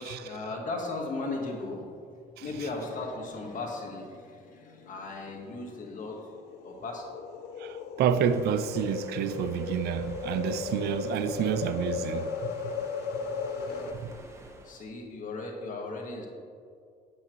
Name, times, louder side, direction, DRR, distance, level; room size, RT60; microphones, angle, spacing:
voice 1, 0.0-1.9 2.4-6.3 6.6-7.1 12.7-12.8 13.5-14.2 14.6-16.3, left 3 dB, 50° left, 1.6 m, -37 dB
sound 1, 4.8-13.9, left 5 dB, 75° left, 0.6 m, -36 dB
voice 2, 7.6-12.5 13.9-14.1, right 9 dB, 70° right, 0.4 m, -29 dB
sound 2, 8.2-14.9, right 2 dB, 15° right, 1.0 m, -51 dB
8.3 x 8.2 x 3.1 m
cardioid pair, 110°, 17 cm